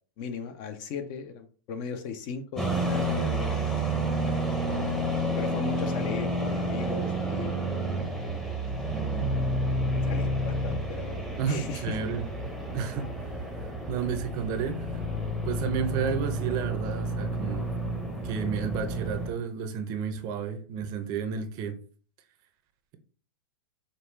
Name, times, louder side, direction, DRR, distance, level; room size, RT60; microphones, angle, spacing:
voice 1, 0.2-3.9 5.4-7.9 10.0-12.0, left 6 dB, 40° left, 0.7 m, -37 dB
sound 1, 2.6-19.3, right 1 dB, 5° left, 0.8 m, -30 dB
voice 2, 11.4-12.3 12.7-13.2 13.9-15.0 15.5-17.7 18.2-21.8, right 6 dB, 40° right, 0.7 m, -31 dB
5.2 x 2.3 x 3.3 m
hypercardioid pair, 135°, 11 cm